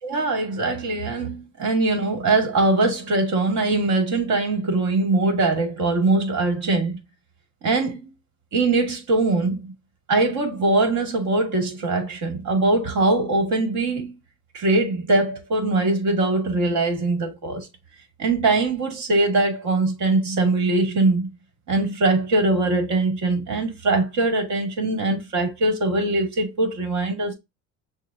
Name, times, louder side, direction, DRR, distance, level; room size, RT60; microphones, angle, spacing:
voice 1, 0.0-7.0 7.6-8.1 8.5-9.7 10.1-14.1 14.5-17.7 18.2-21.3 21.7-27.3, right 2 dB, 55° right, 2.0 m, -22 dB
6.4 x 2.2 x 2.6 m
supercardioid pair, 105°, 36 cm